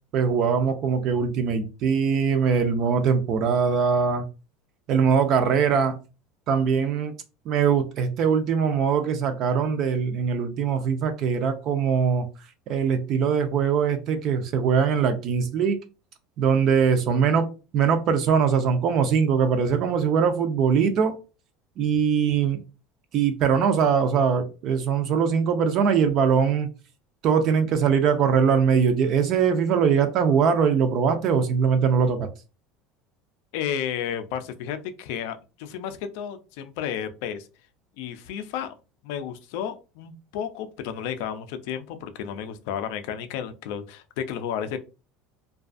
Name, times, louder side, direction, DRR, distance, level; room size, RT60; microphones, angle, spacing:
voice 1, 0.1-4.2 4.9-6.0 6.5-7.1 7.5-12.3 12.7-15.8 16.4-17.5 17.7-21.2 21.8-22.6 23.1-26.7 27.2-32.3, right 6 dB, 40° right, 7 dB, 0.3 m, -22 dB
voice 2, 33.5-37.5 38.0-38.8 39.0-44.8, left 8 dB, 65° left, 9 dB, 0.4 m, -32 dB
2.4 x 2.3 x 2.4 m, 0.31 s
cardioid pair, 160°, 0 cm